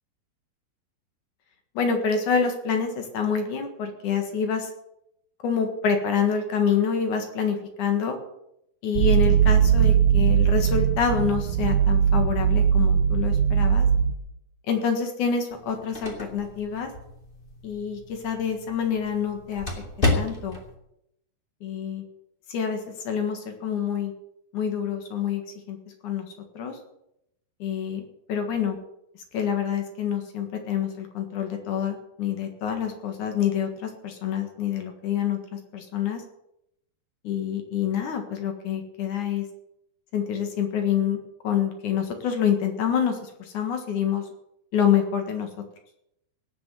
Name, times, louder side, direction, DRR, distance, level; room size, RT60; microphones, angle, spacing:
voice 1, 1.8-4.7 5.4-8.2 8.8-13.9 14.7-16.9 17.6-19.7 20.1-20.6 21.6-22.0 22.5-22.8 23.0-24.1 24.5-25.4 25.7-25.8 26.0-26.3 26.5-26.8 27.6-28.0 28.3-28.8 29.3-35.4 35.7-36.2 37.2-39.4 40.1-44.2 44.7-45.5, left 7 dB, 60° left, 5 dB, 2.9 m, -27 dB
sound 1, 9.0-14.1, right 8 dB, 75° right, 2.1 m, -20 dB
sound 2, 15.5-20.7, left 2 dB, 15° left, 2.2 m, -32 dB
18.0 x 7.1 x 7.8 m, 0.80 s
omnidirectional pair, 4.2 m